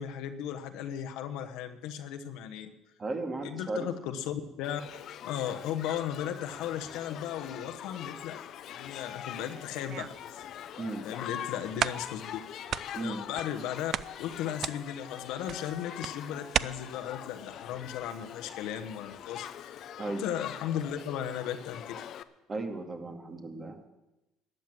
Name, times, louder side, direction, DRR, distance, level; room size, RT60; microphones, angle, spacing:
voice 1, 0.0-2.7 3.4-4.8 5.2-8.4 8.7-10.4 11.0-12.4 13.0-13.9 14.2-19.8 20.2-22.0, left 10 dB, 75° left, 7 dB, 1.1 m, -36 dB
voice 2, 3.0-3.9 10.8-11.1 13.0-13.3 20.0-20.2 22.5-23.9, right 2 dB, 30° right, 5 dB, 2.0 m, -35 dB
Shout / Human group actions, 4.6-22.2, left 10 dB, 60° left, 0.7 m, -43 dB
sound 1, 9.6-10.3 10.9-11.0 11.4-11.5 11.8-12.4 12.7-13.6 13.9-16.6, right 9 dB, 50° right, 0.4 m, -34 dB
13.5 x 9.1 x 7.6 m, 0.98 s
supercardioid pair, 95°, 0 cm